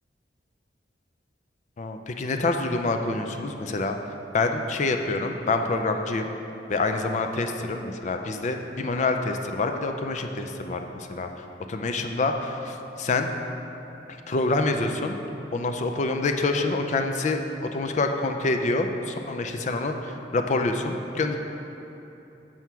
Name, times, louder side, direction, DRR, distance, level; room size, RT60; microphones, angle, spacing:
voice 1, 1.8-4.0 4.3-6.2 6.7-13.3 14.3-15.2 15.5-17.4 17.7-21.4, left 3 dB, 40° left, 5 dB, 0.4 m, -26 dB
7.6 x 5.7 x 4.6 m, 3.0 s
head